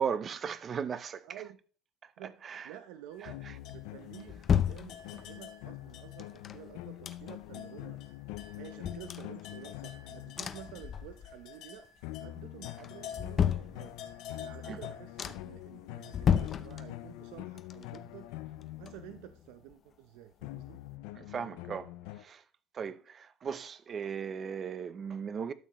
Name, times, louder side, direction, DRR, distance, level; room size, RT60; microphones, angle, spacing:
voice 1, 0.0-1.3 2.4-2.7 3.5-3.6 14.6-14.8 21.1-21.9 22.2-22.4 22.7-25.5, right 7 dB, 35° right, 0.6 m, -36 dB
voice 2, 1.2-1.6 2.2-3.4 3.7-8.0 8.5-11.8 12.2-14.0 14.4-18.3 18.8-20.8, right 11 dB, 90° right, 0.7 m, -50 dB
sound 1, 3.1-6.6 6.8-7.0 7.5-17.1, left 8 dB, 65° left, 1.4 m, -50 dB
sound 2, 3.3-10.9 12.0-19.6 20.4-22.2, left 16 dB, 90° left, 0.5 m, -45 dB
sound 3, 3.7-5.5 6.2-7.6 8.0-8.1 8.3-9.9 10.4-11.5 11.9-12.4 12.8-14.3 14.7-14.8 15.2-15.7 16.1-17.3 17.6-19.4 19.7-19.8, left 8 dB, 35° left, 0.6 m, -34 dB
12.5 x 6.6 x 3.1 m
cardioid pair, 135°, 0 cm